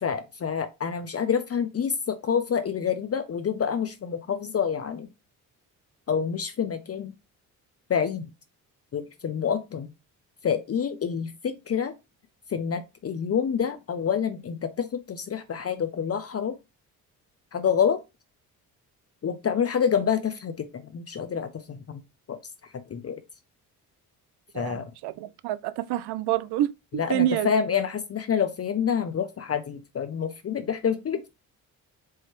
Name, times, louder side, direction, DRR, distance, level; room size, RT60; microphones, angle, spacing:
voice 1, 0.0-5.1 6.1-7.1 7.9-8.3 8.9-9.9 10.4-11.9 12.5-16.6 17.5-18.0 19.2-22.0 22.3-22.4 22.9-23.2 24.5-24.9 26.9-31.3, left 7 dB, 35° left, 0.6 m, -27 dB
voice 2, 24.5-26.7 27.1-27.5, right 13 dB, 75° right, 0.5 m, -27 dB
4.6 x 3.1 x 3.0 m
supercardioid pair, 60°, 39 cm